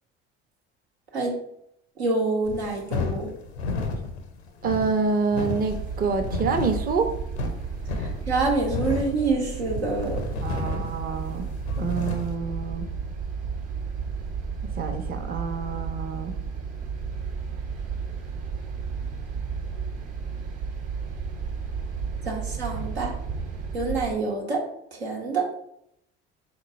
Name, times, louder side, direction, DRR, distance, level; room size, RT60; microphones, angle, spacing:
voice 1, 2.0-3.3 8.0-10.2 22.2-23.1 23.7-25.5, right 3 dB, 85° right, -1 dB, 0.9 m, -27 dB
sound 1, 2.4-12.4, left 4 dB, 85° left, 0.6 m, -33 dB
voice 2, 4.6-7.1 10.4-11.5 11.8-12.9 14.6-16.4, right 5 dB, 30° right, 6 dB, 0.6 m, -27 dB
sound 2, 5.7-24.1, right 5 dB, 50° right, 0.9 m, -33 dB
3.8 x 2.9 x 4.2 m, 0.75 s
hypercardioid pair, 60°, 32 cm